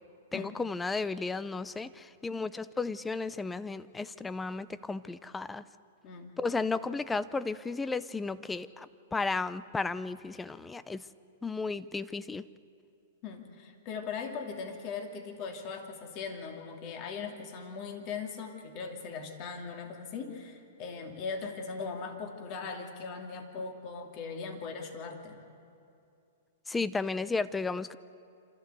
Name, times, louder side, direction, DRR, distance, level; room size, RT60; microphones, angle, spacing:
voice 1, 0.3-5.6 6.4-11.0 11.4-12.5 26.7-28.0, left 3 dB, 10° left, 16 dB, 0.6 m, -34 dB
voice 2, 6.0-6.4 13.2-25.5, left 5 dB, 40° left, 4 dB, 2.7 m, -39 dB
27.0 x 14.0 x 8.2 m, 2.5 s
hypercardioid pair, 125°, 0 cm